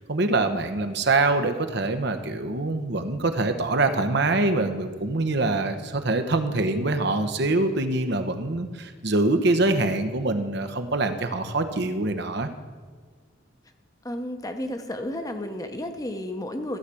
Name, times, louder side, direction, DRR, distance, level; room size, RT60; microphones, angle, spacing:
voice 1, 0.1-12.5, right 2 dB, 60° right, 8 dB, 0.9 m, -24 dB
voice 2, 14.0-16.8, left 1 dB, 20° left, 6 dB, 0.9 m, -32 dB
14.5 x 4.9 x 8.4 m, 1.5 s
head